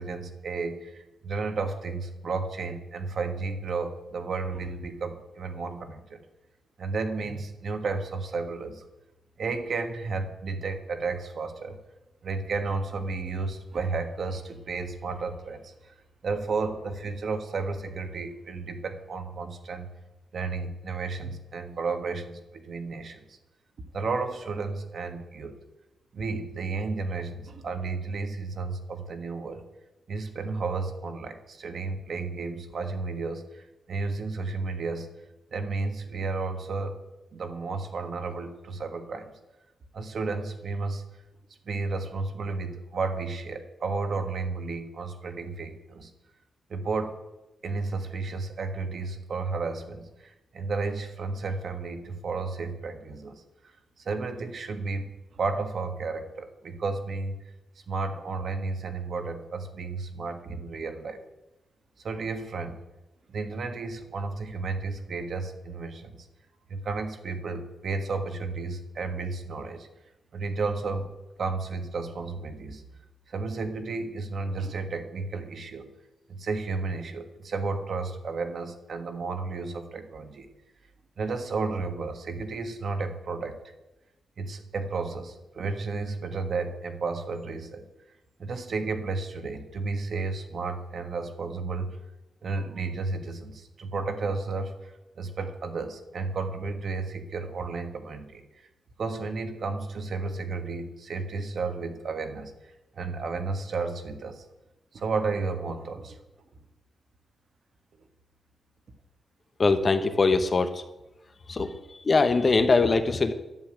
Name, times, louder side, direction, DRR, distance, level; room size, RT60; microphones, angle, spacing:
voice 1, 0.0-6.2 6.8-8.9 9.4-11.8 12.2-15.9 16.2-19.9 20.3-23.4 23.9-25.6 26.1-29.6 30.1-35.1 35.5-37.0 37.3-39.3 39.9-41.0 41.6-46.1 46.7-47.1 47.6-53.4 54.0-55.1 55.3-57.4 57.9-61.2 62.0-62.7 63.3-66.2 66.7-69.9 70.3-71.1 71.4-72.8 73.3-75.9 76.3-80.5 81.2-83.6 84.4-87.8 88.4-91.9 92.4-98.4 99.0-102.5 102.9-104.4 104.9-106.2, right 4 dB, 50° right, 7 dB, 1.5 m, -32 dB
voice 2, 109.6-110.8 111.5-111.7 112.0-113.3, left 3 dB, 30° left, 9 dB, 0.9 m, -22 dB
11.5 x 8.2 x 8.9 m, 0.97 s
wide cardioid pair, 165°, 0 cm